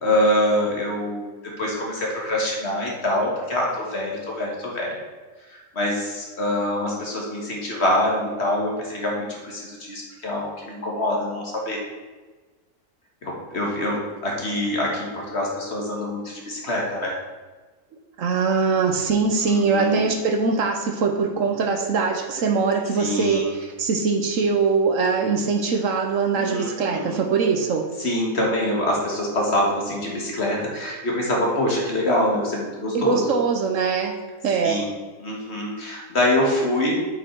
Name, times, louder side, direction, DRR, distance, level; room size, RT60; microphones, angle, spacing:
voice 1, 0.0-5.0 5.5-11.8 13.2-17.2 19.4-20.0 23.0-23.6 26.3-27.2 28.0-33.3 34.6-34.9 35.2-37.0, left 1 dB, 45° left, -2 dB, 1.9 m, -25 dB
voice 2, 18.2-27.9 32.9-34.2 34.4-34.8, right 5 dB, 65° right, 4 dB, 1.1 m, -22 dB
8.0 x 5.5 x 4.6 m, 1.3 s
omnidirectional pair, 1.5 m